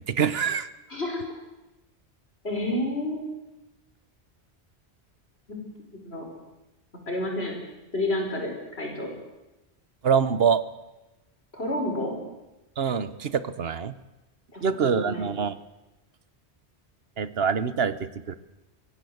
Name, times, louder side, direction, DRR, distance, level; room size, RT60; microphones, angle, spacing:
voice 1, 0.1-0.7 10.0-10.6 12.8-13.9 14.6-15.6 17.2-18.4, right 6 dB, 65° right, 15 dB, 1.2 m, -25 dB
voice 2, 0.9-1.2 2.4-3.3 5.5-5.6 5.9-6.3 7.1-7.5 7.9-9.1 11.5-12.2 14.5-15.3, left 1 dB, 65° left, 1 dB, 5.7 m, -30 dB
24.0 x 17.0 x 7.9 m, 1.0 s
omnidirectional pair, 1.1 m